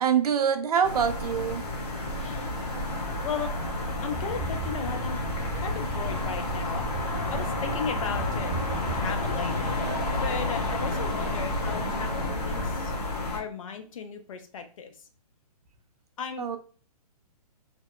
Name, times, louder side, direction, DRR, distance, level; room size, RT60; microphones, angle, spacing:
voice 1, 0.0-1.6 16.4-16.6, right 7 dB, 70° right, 9 dB, 0.4 m, -25 dB
sound 1, 0.8-13.4, left 2 dB, 75° left, 1.0 m, -31 dB
voice 2, 2.1-2.5 3.2-3.5 4.0-5.2 5.6-8.5 8.9-9.7 10.2-13.0 13.3-15.1 16.2-16.4, left 6 dB, 55° left, 7 dB, 0.5 m, -36 dB
sound 2, 2.7-12.7, right 3 dB, 15° right, 0.6 m, -39 dB
sound 3, 4.2-9.7, right 1 dB, 10° left, 0.9 m, -39 dB
2.8 x 2.0 x 2.2 m, 0.41 s
hypercardioid pair, 130°, 20 cm